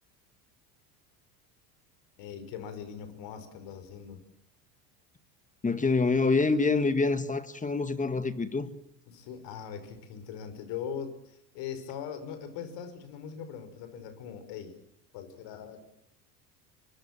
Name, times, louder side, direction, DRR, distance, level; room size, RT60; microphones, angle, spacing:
voice 1, 2.2-4.2 9.1-14.7 15.1-15.8, left 7 dB, 60° left, 5.5 m, -41 dB
voice 2, 5.6-8.7, left 3 dB, 15° left, 2.0 m, -26 dB
24.5 x 23.5 x 7.6 m
hypercardioid pair, 80°, 48 cm